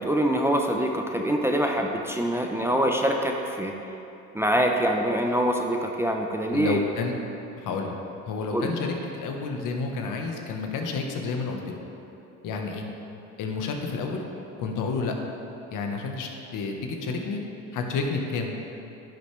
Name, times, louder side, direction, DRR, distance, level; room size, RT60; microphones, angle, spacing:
voice 1, 0.0-3.7 4.3-6.8 8.5-8.7, right 1 dB, 5° right, 2 dB, 0.6 m, -24 dB
voice 2, 6.5-7.1 7.6-8.0 8.3-11.7 12.4-12.8 13.4-14.2 14.6-15.1 15.7-17.4 17.7-18.5, left 4 dB, 60° left, 2 dB, 1.3 m, -30 dB
10.5 x 8.3 x 3.4 m, 2.9 s
supercardioid pair, 85°, 35 cm